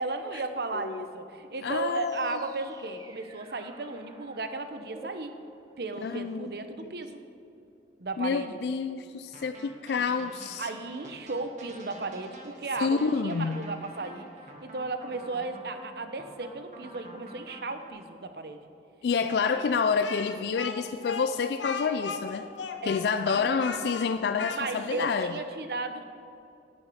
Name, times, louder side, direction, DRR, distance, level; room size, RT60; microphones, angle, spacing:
voice 1, 0.0-5.3 5.8-7.2 8.0-8.6 10.6-14.3 14.6-18.7 19.2-19.7 22.8-23.7 24.5-26.0, right 3 dB, 60° right, 8 dB, 0.7 m, -35 dB
voice 2, 0.7-1.1 1.6-2.4 6.0-6.5 8.2-10.7 12.8-13.6 19.0-22.5 22.9-25.3, left 5 dB, 65° left, 10 dB, 0.3 m, -28 dB
sound 1, 1.6-7.2, right 3 dB, 20° right, 0.6 m, -52 dB
sound 2, 9.3-17.9, right 1 dB, 40° right, 1.4 m, -48 dB
Speech, 20.0-25.1, left 5 dB, 90° left, 0.8 m, -37 dB
9.9 x 9.8 x 4.9 m, 2.7 s
head